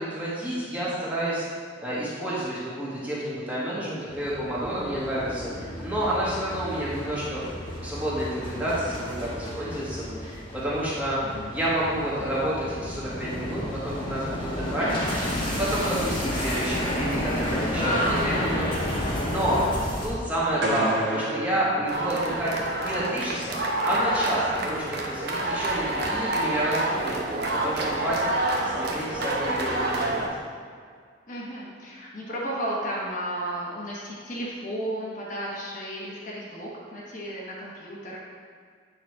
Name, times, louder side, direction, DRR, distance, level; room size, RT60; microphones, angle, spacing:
voice 1, 0.0-1.4 1.8-7.5 7.8-14.9 15.5-19.6 20.0-22.5 22.8-23.6 23.8-28.3 28.6-30.3, right 1 dB, 10° right, -9 dB, 1.7 m, -29 dB
sound 1, 4.1-20.1, left 1 dB, 25° left, 1.2 m, -31 dB
voice 2, 17.8-18.4 31.3-38.2, equal, 40° left, -5 dB, 1.2 m, -33 dB
sound 2, 20.6-22.7, right 1 dB, 70° right, 1.6 m, -30 dB
sound 3, 21.9-30.3, right 1 dB, 55° right, 0.8 m, -28 dB
8.7 x 4.0 x 4.7 m, 2.1 s
head